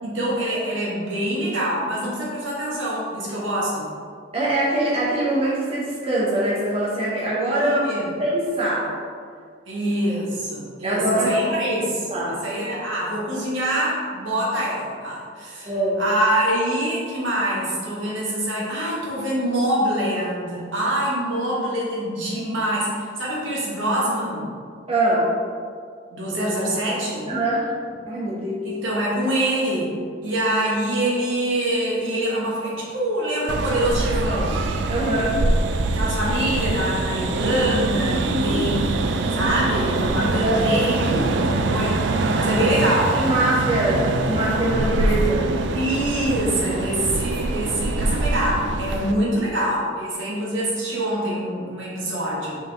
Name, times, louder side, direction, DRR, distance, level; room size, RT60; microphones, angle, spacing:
voice 1, 0.0-3.9 7.5-8.0 9.7-15.7 16.0-24.5 26.1-27.3 28.6-29.9 30.2-34.6 35.9-42.0 42.3-43.2 45.7-52.6, right 1 dB, 80° right, -5 dB, 1.2 m, -25 dB
voice 2, 4.3-7.9 8.2-8.9 10.8-11.6 12.1-12.4 15.7-16.0 24.9-25.3 27.3-27.6 28.1-28.6 34.9-35.4 38.2-38.6 40.4-40.6 41.0-41.2 42.7-42.8 43.1-45.5, right 1 dB, 30° right, -7 dB, 0.9 m, -23 dB
sound 1, 33.5-49.1, right 2 dB, 60° right, 0.3 m, -24 dB
4.3 x 3.5 x 3.4 m, 2.1 s
head